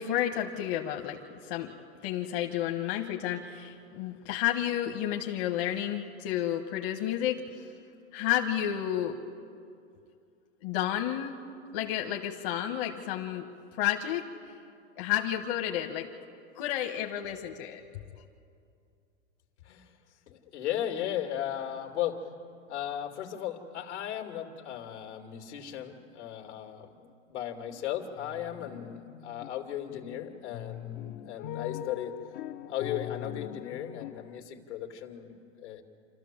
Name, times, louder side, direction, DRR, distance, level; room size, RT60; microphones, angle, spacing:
voice 1, 0.0-1.7 2.0-7.7 8.1-9.2 10.6-11.3 11.7-13.5 13.8-14.2 15.0-16.1 16.5-17.8, left 11 dB, 50° left, 3 dB, 1.5 m, -31 dB
voice 2, 19.6-20.0 20.3-22.2 22.7-32.1 32.7-35.8, left 10 dB, 80° left, 4 dB, 2.6 m, -36 dB
sound 1, 27.7-27.9 28.2-29.5 29.9-34.4, left 13 dB, 35° left, 0.5 m, -41 dB
28.0 x 13.5 x 7.4 m, 2.4 s
hypercardioid pair, 130°, 34 cm